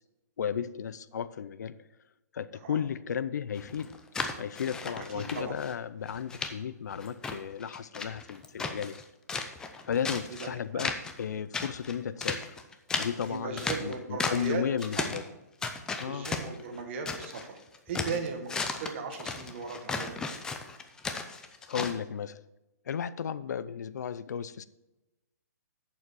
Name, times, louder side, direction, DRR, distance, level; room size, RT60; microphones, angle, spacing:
voice 1, 0.4-1.9 2.3-4.0 4.4-9.1 9.9-12.6 13.0-15.2 16.0-16.3 18.1-18.3 21.7-22.4 22.9-24.6, left 8 dB, 75° left, 16 dB, 0.5 m, -34 dB
sound 1, 3.5-5.7 6.1-6.5 6.9-9.0 9.3-10.5 10.8-11.2 11.5-14.5 14.8-15.3 15.6-17.4 17.7-21.9, left 4 dB, 5° left, 0.5 m, -35 dB
voice 2, 5.1-5.5 10.7-10.8 13.3-14.6 15.0-15.1 16.1-17.6 17.9-20.2, right 5 dB, 40° right, 4 dB, 1.6 m, -37 dB
8.2 x 7.0 x 4.8 m, 0.99 s
hypercardioid pair, 160°, 9 cm